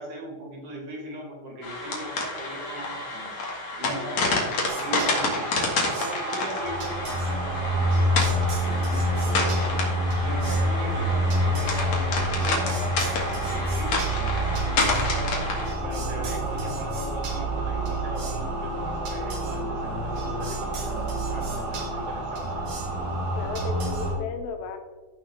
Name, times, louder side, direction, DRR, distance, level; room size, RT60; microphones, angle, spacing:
voice 1, 0.0-3.3 3.8-4.5 4.8-5.5 6.0-22.5, right 1 dB, 55° right, -3 dB, 3.7 m, -39 dB
sound 1, 1.6-15.7, left 3 dB, 55° left, 2.5 m, -29 dB
voice 2, 3.8-4.1 23.3-24.8, left 5 dB, 80° left, 7 dB, 2.6 m, -34 dB
sound 2, 4.7-24.2, right 1 dB, 75° right, 3.6 m, -28 dB
15.0 x 5.3 x 3.3 m, 1.3 s
omnidirectional pair, 4.4 m